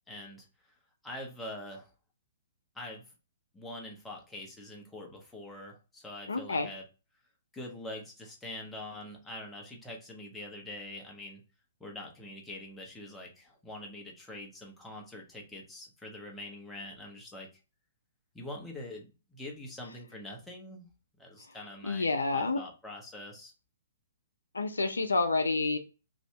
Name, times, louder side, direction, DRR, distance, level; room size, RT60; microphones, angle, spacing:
voice 1, 0.1-0.5 1.0-1.9 2.7-3.0 3.5-6.8 7.5-11.4 11.8-17.5 18.3-20.9 21.2-23.5, left 1 dB, 10° left, 0 dB, 0.9 m, -44 dB
voice 2, 6.3-6.7 21.5-21.6 21.8-22.6 24.5-25.8, left 3 dB, 80° left, 6 dB, 0.5 m, -29 dB
2.7 x 2.6 x 3.2 m, 0.32 s
figure-of-eight pair, 120°, 0 cm